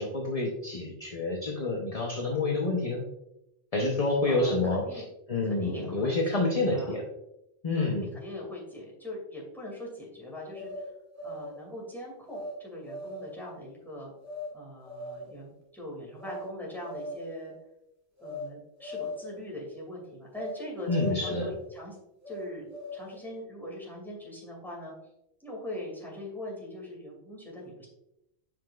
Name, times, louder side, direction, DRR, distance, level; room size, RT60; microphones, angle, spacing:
voice 1, 0.0-3.0 3.7-5.0 5.3-7.0 7.6-8.1 20.9-21.5, left 2 dB, 35° left, 0 dB, 0.9 m, -28 dB
voice 2, 4.3-5.1 5.4-7.0 7.7-10.8 11.2-14.1 14.5-17.5 18.2-22.0 22.3-24.9 25.4-27.9, left 1 dB, ahead, -4 dB, 2.3 m, -41 dB
sound 1, 10.5-11.6 12.3-12.6 12.8-13.5 14.2-14.5 14.8-15.4 16.2-16.5 16.8-17.4 18.2-18.5 18.8-19.4 20.3-20.6 20.8-21.7 22.2-23.2, left 1 dB, 15° right, 1.9 m, -39 dB
7.6 x 5.7 x 2.4 m, 0.86 s
omnidirectional pair, 1.1 m